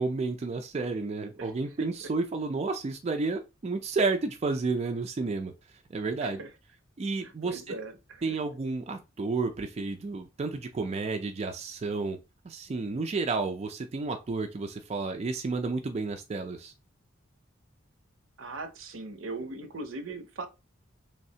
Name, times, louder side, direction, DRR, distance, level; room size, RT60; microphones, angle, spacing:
voice 1, 0.0-5.5 5.9-6.4 7.0-7.7 8.2-12.2 12.4-16.7, right 3 dB, 30° right, 0.3 m, -31 dB
voice 2, 7.2-8.4 18.4-20.5, right 3 dB, 75° right, 0.6 m, -39 dB
3.4 x 3.1 x 2.7 m
head